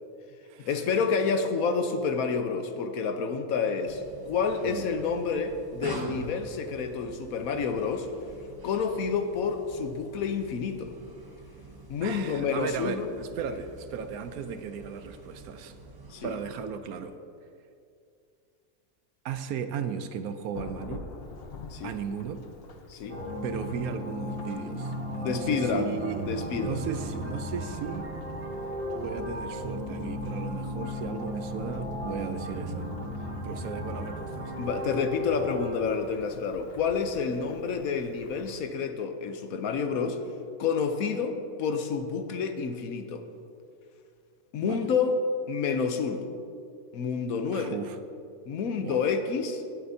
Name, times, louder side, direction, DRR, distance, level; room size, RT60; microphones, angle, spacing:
voice 1, 0.6-8.1 8.6-10.9 11.9-13.1 16.1-16.3 21.7-22.0 22.9-23.2 25.2-25.9 26.3-26.9 34.6-40.2 40.6-43.2 44.5-45.2 45.5-46.3 46.9-47.8 48.5-49.6, left 5 dB, 70° left, 7 dB, 1.1 m, -29 dB
sound 1, 3.9-16.7, right 1 dB, 25° right, 0.5 m, -45 dB
voice 2, 12.0-15.7 16.2-17.2 19.2-21.1 21.8-22.4 23.4-28.1 28.9-32.9 33.4-34.5 37.3-37.5 44.6-44.9 47.5-48.0 48.8-49.0, right 7 dB, 75° right, 9 dB, 1.1 m, -36 dB
Thunderstorm / Rain, 20.5-38.6, left 4 dB, 50° left, 0.7 m, -47 dB
sound 2, 23.1-35.7, equal, 60° right, 3.1 m, -35 dB
18.5 x 7.8 x 2.7 m, 2.4 s
omnidirectional pair, 1.6 m